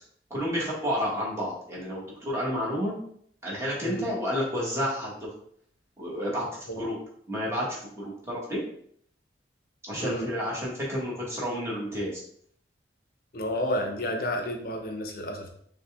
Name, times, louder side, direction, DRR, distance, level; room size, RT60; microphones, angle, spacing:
voice 1, 0.3-3.0 3.4-5.3 6.0-7.0 7.3-8.6 9.9-12.2, equal, 15° right, -6 dB, 1.4 m, -30 dB
voice 2, 10.0-10.3 13.3-15.5, equal, 50° left, 3 dB, 0.7 m, -31 dB
5.5 x 2.3 x 3.5 m, 0.65 s
head